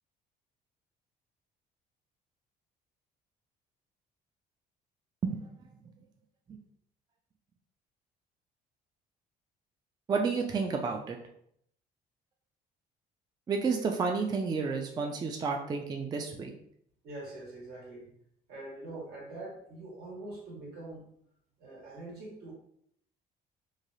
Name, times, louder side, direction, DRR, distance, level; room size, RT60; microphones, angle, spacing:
voice 1, 10.1-11.2 13.5-16.5, right 4 dB, 25° right, 3 dB, 0.3 m, -31 dB
voice 2, 17.0-18.1 18.5-21.1 21.6-22.5, right 2 dB, 75° right, -4 dB, 1.5 m, -44 dB
3.1 x 2.3 x 2.6 m, 0.67 s
cardioid pair, 110°, 17 cm